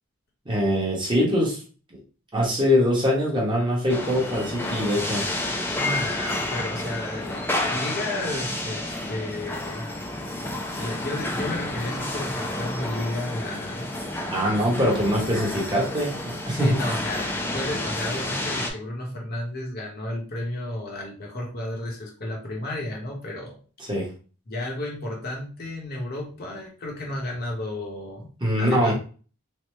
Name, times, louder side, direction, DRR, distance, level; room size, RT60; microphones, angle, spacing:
voice 1, 0.5-1.6 2.3-5.3 14.3-16.7 23.9-24.1 28.4-28.9, equal, 20° right, -4 dB, 0.9 m, -23 dB
sound 1, 3.9-18.7, left 1 dB, 10° left, 0.3 m, -30 dB
voice 2, 5.8-9.9 10.4-13.9 16.5-23.6 24.5-28.3 28.6-28.9, left 1 dB, 45° left, -1 dB, 0.9 m, -32 dB
3.2 x 2.0 x 3.0 m, 0.38 s
head